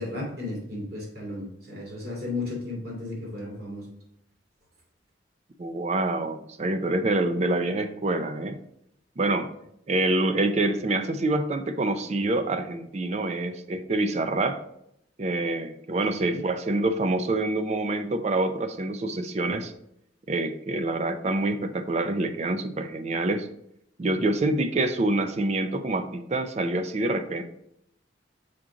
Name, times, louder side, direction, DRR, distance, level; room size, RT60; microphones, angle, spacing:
voice 1, 0.0-3.9 16.1-16.4, left 2 dB, 55° right, -3 dB, 2.6 m, -34 dB
voice 2, 5.6-8.6 9.2-9.5 9.9-14.6 15.2-19.7 20.3-23.5 24.0-27.4, right 2 dB, 35° right, 9 dB, 0.4 m, -26 dB
5.9 x 5.0 x 3.7 m, 0.75 s
head